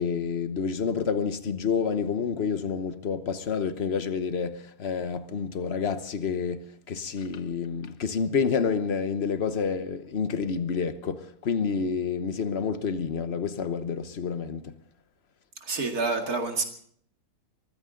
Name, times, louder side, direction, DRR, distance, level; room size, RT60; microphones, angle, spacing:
voice 1, 0.0-14.8, left 6 dB, 45° left, 1.2 m, -29 dB
voice 2, 15.6-16.6, right 3 dB, 75° right, 2.7 m, -28 dB
23.0 x 15.0 x 3.8 m
omnidirectional pair, 1.6 m